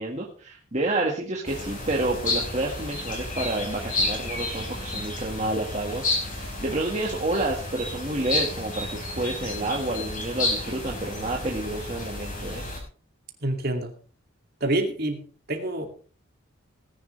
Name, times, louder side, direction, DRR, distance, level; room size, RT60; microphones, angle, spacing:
voice 1, 0.0-12.6, right 2 dB, 35° right, -2 dB, 1.8 m, -29 dB
sound 1, 1.4-12.8, left 2 dB, 40° left, 5.3 m, -31 dB
voice 2, 13.4-13.9 14.6-15.2 15.5-15.9, right 1 dB, 50° right, 3 dB, 2.6 m, -26 dB
19.0 x 10.5 x 3.4 m, 0.41 s
head